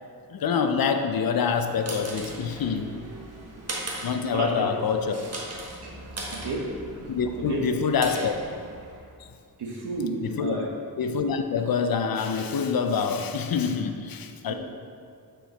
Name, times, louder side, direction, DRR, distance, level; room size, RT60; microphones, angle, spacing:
voice 1, 0.3-3.0 4.0-5.1 7.1-8.3 10.2-10.7 11.0-14.5, left 6 dB, 65° left, 7 dB, 0.6 m, -26 dB
sound 1, 1.4-9.1, right 2 dB, 40° right, 1.4 m, -39 dB
voice 2, 4.3-4.7 5.8-6.7 7.4-7.6 9.6-10.7 14.5-14.6, right 3 dB, 85° right, -2 dB, 1.3 m, -32 dB
7.8 x 4.6 x 4.1 m, 2.3 s
cardioid pair, 85°, 39 cm